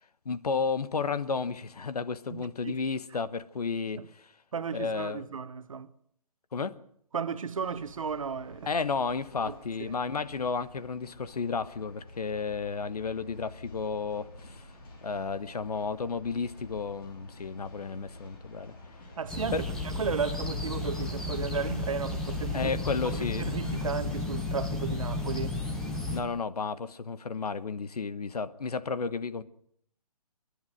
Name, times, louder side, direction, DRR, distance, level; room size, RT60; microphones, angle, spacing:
voice 1, 0.2-4.2 4.7-5.2 6.5-6.8 8.7-14.7 15.0-18.8 19.5-19.6 22.5-23.5 26.1-29.4, left 5 dB, 80° left, 1.4 m, -32 dB
voice 2, 2.3-2.8 4.0-4.1 4.5-5.9 7.1-8.7 9.4-9.9 19.2-22.7 23.1-25.6, right 6 dB, 60° right, 1.3 m, -34 dB
sound 1, 7.6-23.9, left 2 dB, 35° left, 5.9 m, -49 dB
sound 2, 19.3-26.2, left 2 dB, 5° left, 0.9 m, -33 dB
27.0 x 11.0 x 9.0 m
hypercardioid pair, 170°, 20 cm